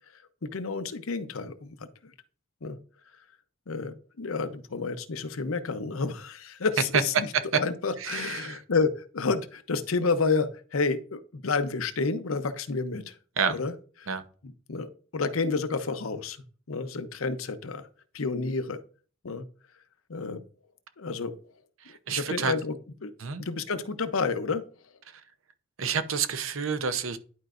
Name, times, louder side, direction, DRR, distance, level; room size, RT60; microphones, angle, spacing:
voice 1, 0.4-2.1 2.6-2.8 3.7-7.3 7.6-13.2 13.5-13.7 14.0-14.1 14.7-16.4 16.7-17.9 18.1-18.8 19.2-19.5 20.1-20.4 21.0-21.3 22.1-22.8 23.0-23.1 23.4-24.6, left 4 dB, 85° left, 0.7 m, -30 dB
voice 2, 8.0-8.6 13.4-13.5 14.1-14.2 21.8-22.5 23.2-23.4 25.1-25.2 25.8-27.2, right 6 dB, 75° right, 0.7 m, -30 dB
11.0 x 4.5 x 2.5 m
head